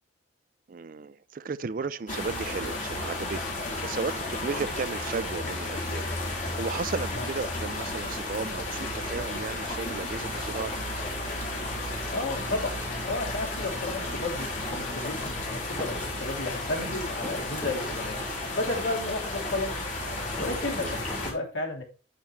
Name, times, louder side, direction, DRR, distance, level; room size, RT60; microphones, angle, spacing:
voice 1, 0.7-10.8 20.8-21.0, right 4 dB, 45° right, 0.4 m, -35 dB
sound 1, 2.1-21.3, left 2 dB, 40° left, 4.2 m, -33 dB
voice 2, 12.1-18.2 18.5-19.7 20.4-21.8, left 2 dB, 70° left, 3.2 m, -33 dB
sound 2, 15.7-16.1 16.5-17.9 18.5-20.1 20.3-21.3, left 1 dB, 15° left, 2.8 m, -42 dB
9.1 x 8.5 x 3.3 m
head